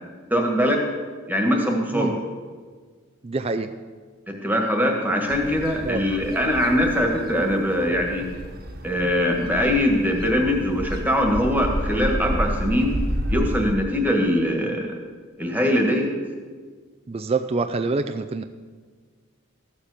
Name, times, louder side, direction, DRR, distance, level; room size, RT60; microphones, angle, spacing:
voice 1, 0.3-0.8 1.3-2.1 4.3-8.3 8.8-12.9 13.3-14.9 15.4-16.1, equal, 10° right, 2 dB, 1.6 m, -22 dB
voice 2, 3.2-3.8 5.8-6.0 17.1-18.4, right 3 dB, 30° right, 7 dB, 0.4 m, -26 dB
sound 1, 5.3-13.8, equal, 45° right, 1.3 m, -31 dB
14.0 x 7.3 x 6.6 m, 1.6 s
head